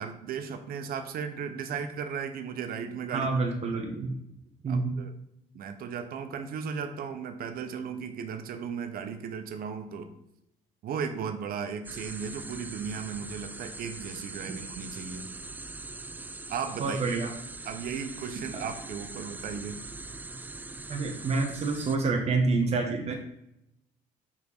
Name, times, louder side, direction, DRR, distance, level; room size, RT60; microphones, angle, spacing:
voice 1, 0.0-3.3 4.7-5.1 5.5-10.1 10.8-15.3 16.5-17.2 17.6-19.8, right 6 dB, 60° right, 9 dB, 0.8 m, -36 dB
voice 2, 3.1-4.2 4.6-5.0 16.8-17.3 18.5-18.6 20.9-23.1, right 3 dB, 40° right, 3 dB, 1.0 m, -28 dB
sound 1, 11.8-22.0, right 3 dB, 10° right, 0.3 m, -42 dB
5.8 x 4.4 x 3.9 m, 0.81 s
cardioid pair, 110°, 17 cm